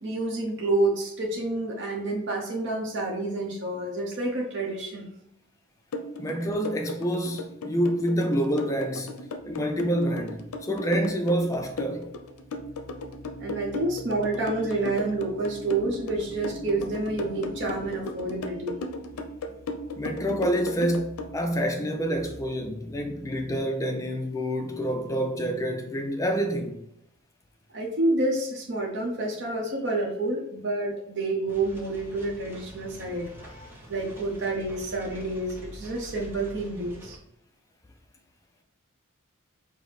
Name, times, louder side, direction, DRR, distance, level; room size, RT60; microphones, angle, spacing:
voice 1, 0.0-5.1 13.4-18.8 27.7-37.2, right 2 dB, 55° right, 0.8 m, -29 dB
sound 1, 5.9-21.3, left 2 dB, 90° left, 0.5 m, -36 dB
voice 2, 6.2-12.1 20.0-26.8, equal, 15° left, 0.4 m, -27 dB
sound 2, 9.4-23.6, left 3 dB, 40° left, 0.7 m, -46 dB
sound 3, 31.5-37.2, right 1 dB, 10° right, 0.7 m, -45 dB
5.0 x 2.1 x 4.0 m
head